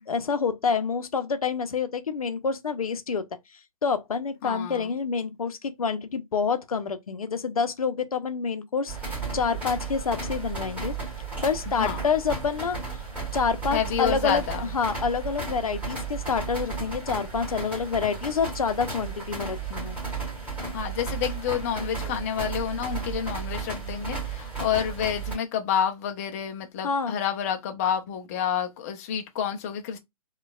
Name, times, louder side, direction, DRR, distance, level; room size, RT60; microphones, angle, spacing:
voice 1, 0.1-3.2 3.8-10.9 11.4-12.8 13.3-14.4 14.7-20.0 22.0-22.1 26.8-27.1, left 5 dB, 70° left, 0.6 m, -27 dB
voice 2, 4.4-4.9 11.7-12.0 13.7-14.6 20.7-30.0, left 8 dB, 25° left, 0.4 m, -29 dB
sound 1, 8.9-25.3, right 4 dB, 10° right, 1.5 m, -34 dB
4.2 x 2.3 x 2.3 m
figure-of-eight pair, 130°, 19 cm